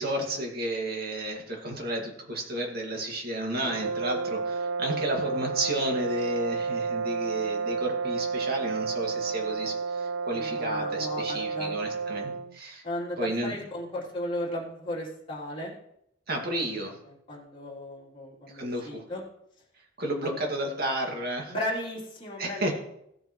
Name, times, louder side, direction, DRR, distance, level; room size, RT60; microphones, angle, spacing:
voice 1, 0.0-12.8 13.2-13.6 16.3-17.0 18.5-19.0 20.0-21.5 22.4-22.7, right 1 dB, 55° right, 1 dB, 2.2 m, -32 dB
sound 1, 3.6-12.6, right 4 dB, 70° right, 0.3 m, -31 dB
voice 2, 10.3-11.7 12.8-15.7 16.6-16.9 17.3-19.2 21.5-22.7, left 1 dB, 30° left, -6 dB, 3.3 m, -35 dB
16.0 x 7.7 x 3.2 m, 0.76 s
head